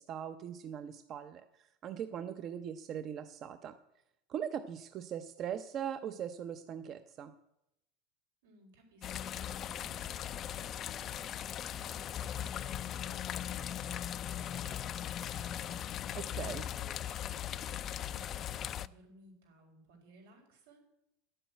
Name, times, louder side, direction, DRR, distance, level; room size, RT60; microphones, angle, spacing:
voice 1, 0.0-3.7 4.3-7.3 16.1-16.6, right 9 dB, 35° right, 10 dB, 0.6 m, -40 dB
voice 2, 8.4-16.2 16.5-20.8, right 2 dB, 85° right, 2 dB, 4.9 m, -60 dB
sound 1, 9.0-18.9, left 10 dB, 35° left, 0.3 m, -39 dB
10.0 x 7.9 x 8.9 m, 0.84 s
supercardioid pair, 140°, 0 cm